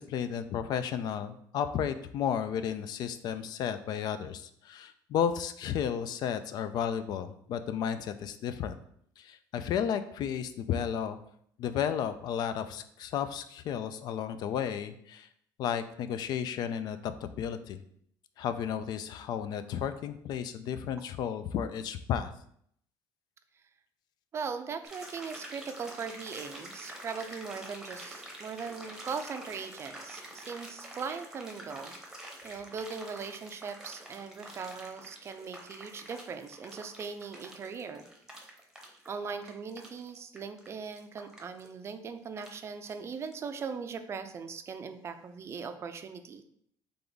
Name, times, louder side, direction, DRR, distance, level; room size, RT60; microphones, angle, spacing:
voice 1, 0.0-8.8 9.2-11.2 11.6-15.3 15.6-17.8 18.4-22.3, left 8 dB, 55° left, 11 dB, 0.4 m, -33 dB
voice 2, 24.3-32.0 32.4-38.0 39.1-46.4, right 5 dB, 35° right, 9 dB, 0.4 m, -39 dB
sound 1, 24.8-43.3 43.6-43.7, right 1 dB, 5° right, 0.9 m, -47 dB
3.4 x 3.4 x 3.9 m, 0.68 s
cardioid pair, 125°, 8 cm